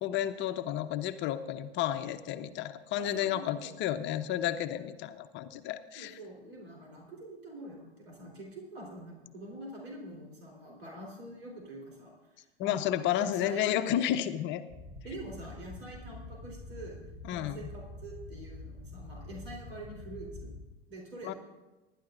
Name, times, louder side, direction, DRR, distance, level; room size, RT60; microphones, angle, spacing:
voice 1, 0.0-6.2 12.6-14.6 17.3-17.7 21.2-21.3, left 11 dB, 40° left, 10 dB, 0.8 m, -32 dB
voice 2, 3.0-3.8 5.9-12.8 13.2-13.7 15.0-17.0 17.3-20.5 20.9-21.4, right 1 dB, 75° right, -1 dB, 4.0 m, -45 dB
sound 1, 14.7-20.7, left 2 dB, 15° right, 5.6 m, -46 dB
25.0 x 11.5 x 2.6 m, 1.1 s
figure-of-eight pair, 90°, 31 cm